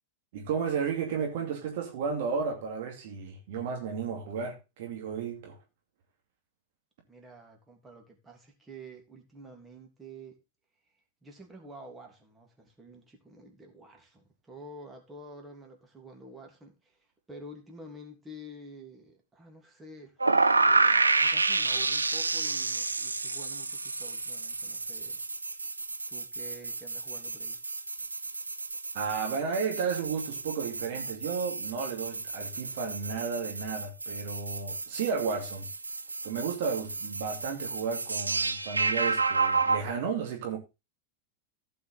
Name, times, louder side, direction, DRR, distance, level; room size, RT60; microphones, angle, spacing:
voice 1, 0.3-5.6 28.9-35.7 36.2-40.6, right 6 dB, 50° right, 2.6 m, -33 dB
voice 2, 7.1-10.4 11.2-20.2 20.6-25.2 26.1-27.6, right 1 dB, 15° right, 3.1 m, -49 dB
sound 1, 20.2-39.8, right 3 dB, 80° right, 0.7 m, -30 dB
15.5 x 5.8 x 3.7 m
figure-of-eight pair, 90°, 0 cm